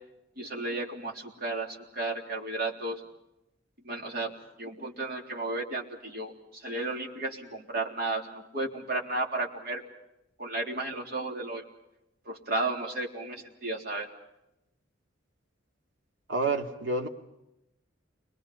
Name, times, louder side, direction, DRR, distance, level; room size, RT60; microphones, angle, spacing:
voice 1, 0.4-3.0 3.8-4.3 4.6-9.8 10.4-11.6 12.3-14.1, right 2 dB, 50° right, 1 dB, 3.7 m, -33 dB
voice 2, 16.3-17.1, right 3 dB, 70° right, 3 dB, 2.5 m, -28 dB
29.5 x 24.0 x 5.6 m, 0.89 s
head